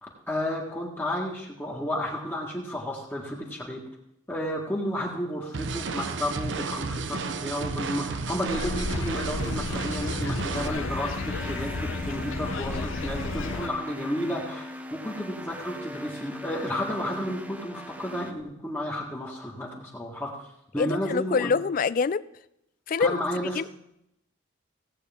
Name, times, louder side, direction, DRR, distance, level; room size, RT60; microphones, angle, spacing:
voice 1, 0.0-3.8 4.3-20.5 20.7-21.5 23.0-23.6, equal, 10° left, -3 dB, 1.6 m, -32 dB
sound 1, 5.5-10.7, right 4 dB, 70° right, 0.6 m, -32 dB
sound 2, 8.5-13.7, left 3 dB, 90° left, 0.6 m, -32 dB
sound 3, 10.5-18.3, equal, 10° right, 0.6 m, -40 dB
voice 2, 20.8-22.2 22.9-23.2 23.6-23.7, left 5 dB, 45° left, 18 dB, 0.3 m, -25 dB
17.0 x 8.3 x 3.5 m, 0.80 s
head